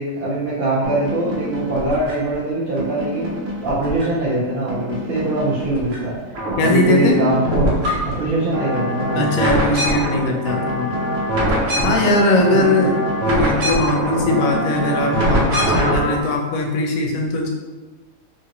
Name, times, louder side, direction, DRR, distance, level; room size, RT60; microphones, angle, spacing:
voice 1, 0.0-6.2 6.6-7.7 8.0-9.3 11.7-12.1 12.5-12.9, right 2 dB, 55° right, -9 dB, 0.7 m, -22 dB
sound 1, 0.8-2.3 2.8-4.3 4.7-6.0 6.3-16.2, equal, 75° right, 1.0 m, -23 dB
voice 2, 6.6-7.2 9.1-10.9 11.8-13.0 13.2-17.5, left 2 dB, 85° left, 1 dB, 1.0 m, -20 dB
2.8 x 2.5 x 2.8 m, 1.3 s
omnidirectional pair, 1.4 m